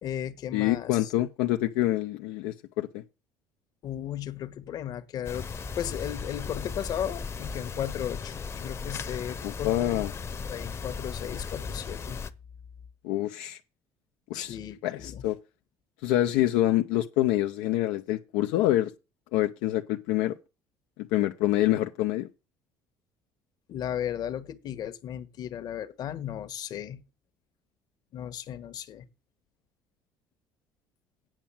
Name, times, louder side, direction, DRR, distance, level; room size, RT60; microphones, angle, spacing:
voice 1, 0.0-1.1 3.8-5.5 5.7-10.1 10.4-12.2 14.3-15.2 23.7-27.0 28.1-29.0, left 10 dB, 60° left, 1.4 m, -35 dB
voice 2, 0.5-3.0 9.4-10.1 13.0-13.6 14.3-14.6 14.8-15.4 16.0-18.9 19.3-20.4 21.1-22.3, left 14 dB, 85° left, 0.7 m, -26 dB
sound 1, 5.2-12.3, left 5 dB, 35° left, 0.9 m, -36 dB
8.9 x 6.0 x 7.2 m
supercardioid pair, 85°, 8 cm